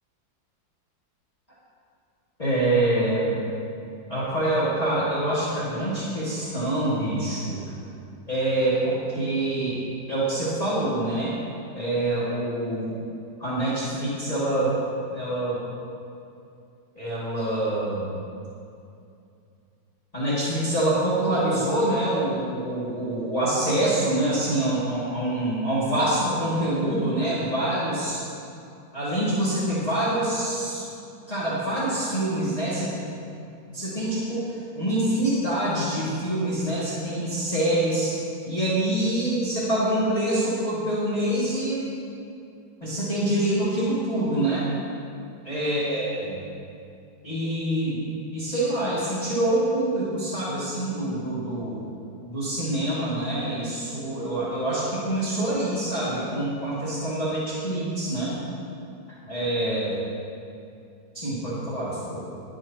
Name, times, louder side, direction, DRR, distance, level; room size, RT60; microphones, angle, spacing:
voice 1, 2.4-3.4 4.1-7.7 8.3-9.8 10.1-11.4 11.8-13.0 13.4-14.8 15.1-15.6 17.0-18.1 20.1-28.2 28.9-30.9 31.3-33.1 33.7-38.1 38.4-41.9 42.8-44.7 45.4-46.4 47.2-48.0 48.3-51.8 52.2-58.4 59.2-59.9 61.1-62.2, right 1 dB, 20° left, -11 dB, 2.3 m, -25 dB
21.0 x 7.7 x 2.9 m, 2.5 s
omnidirectional pair, 2.0 m